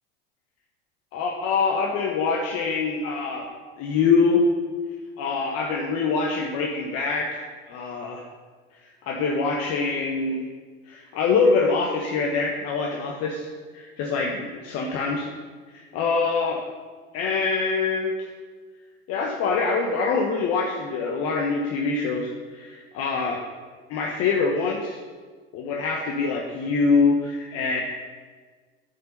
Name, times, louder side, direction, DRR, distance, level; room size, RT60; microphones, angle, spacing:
voice 1, 1.1-3.4 3.8-4.4 5.2-8.2 9.1-10.5 10.9-13.5 13.7-15.3 15.7-16.6 17.1-18.3 19.1-23.4 23.9-25.0 25.5-27.8, left 4 dB, 55° left, 0 dB, 1.1 m, -24 dB
9.2 x 5.5 x 5.4 m, 1.5 s
hypercardioid pair, 75°, 29 cm